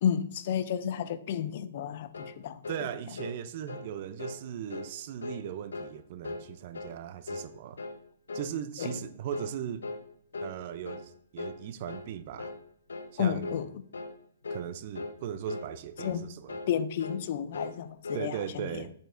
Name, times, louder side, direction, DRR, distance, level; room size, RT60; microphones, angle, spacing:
voice 1, 0.0-2.9 8.8-8.9 13.2-13.7 16.0-16.3 16.7-18.8, left 8 dB, 50° left, 0.4 m, -31 dB
sound 1, 2.1-2.4 2.6-2.9 3.2-3.4 3.7-3.9 4.2-4.4 4.7-4.9 5.2-5.4 5.7-6.0 6.2-6.5 6.7-7.0 7.3-7.5 7.8-8.0 8.3-8.5 8.8-9.0 9.3-9.6 9.8-10.0 10.3-10.6 10.8-11.1 11.4-11.6 11.9-12.1 12.4-12.6 12.9-13.1 13.4-13.6 13.9-14.2 14.4-14.7 15.0-15.2 15.5-15.7 16.0-16.2 16.5-16.7 17.0-17.2 17.5-17.8 18.0-18.3, left 3 dB, 90° left, 0.6 m, -39 dB
voice 2, 2.7-7.8 8.3-9.8 10.4-12.5 13.1-13.6 14.5-16.6 18.1-18.9, right 9 dB, 50° right, 0.5 m, -38 dB
7.4 x 5.2 x 2.6 m
hypercardioid pair, 140°, 0 cm